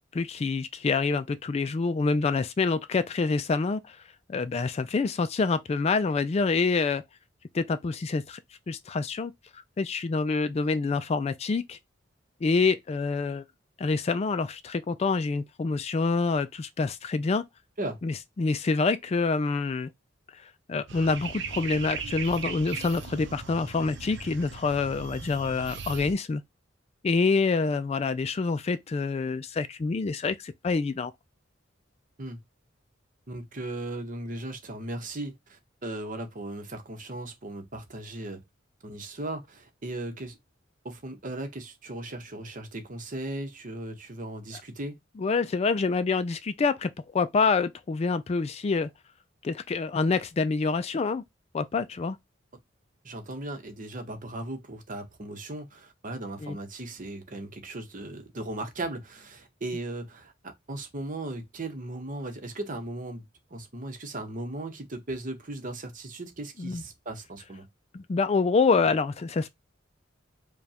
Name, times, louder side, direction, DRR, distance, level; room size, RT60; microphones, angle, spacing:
voice 1, 0.1-4.0 4.3-7.0 7.5-8.4 8.7-9.3 9.8-11.8 12.4-13.4 13.8-17.4 18.0-19.9 20.3-20.4 20.7-26.4 27.0-31.1 45.2-48.9 49.4-51.2 51.5-52.2 56.4-56.6 66.6-66.8 67.9-69.5, left 4 dB, 35° left, 0.3 m, -26 dB
sound 1, 20.9-26.1, right 6 dB, 65° right, 0.7 m, -38 dB
voice 2, 33.3-38.4 38.8-40.4 40.8-44.9 53.0-60.3 60.7-63.2 63.5-67.7, right 2 dB, 45° right, 1.0 m, -37 dB
5.1 x 2.3 x 2.8 m
head